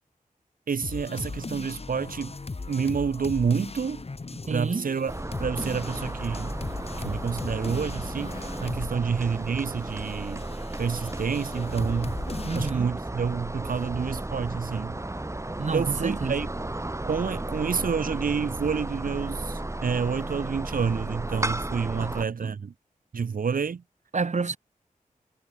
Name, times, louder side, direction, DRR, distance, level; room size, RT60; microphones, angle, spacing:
voice 1, 0.7-2.3 2.7-4.0 4.5-5.1 5.4-6.5 7.0-10.4 10.8-12.2 12.5-15.0 15.7-16.5 17.0-22.7 23.1-23.8, right 6 dB, 90° right, 2.9 m, -28 dB
sound 1, 0.8-9.0 9.3-12.7, left 3 dB, 45° left, 7.9 m, -38 dB
voice 2, 4.5-4.9 8.9-9.1 12.5-12.9 15.6-16.4 22.0-22.1 22.4-22.5 24.1-24.6, right 4 dB, 60° right, 3.9 m, -29 dB
sound 2, 5.1-22.2, right 2 dB, 20° right, 2.8 m, -34 dB
wide cardioid pair, 85°, 14 cm